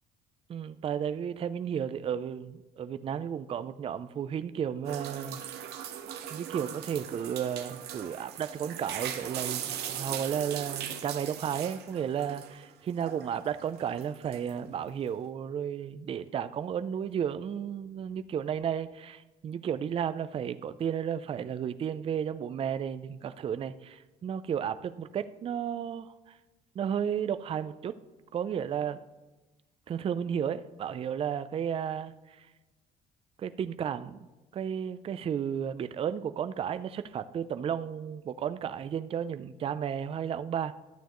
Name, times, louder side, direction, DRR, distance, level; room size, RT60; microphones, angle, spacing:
voice 1, 0.5-5.4 6.3-26.4 26.8-27.9 28.3-29.0 29.9-32.5 33.4-34.2 34.5-40.7, right 8 dB, 35° right, 12 dB, 0.4 m, -33 dB
sound 1, 4.8-12.7 13.0-14.6, right 10 dB, 75° right, 0.9 m, -39 dB
11.0 x 9.2 x 3.0 m, 1.1 s
cardioid pair, 110°, 17 cm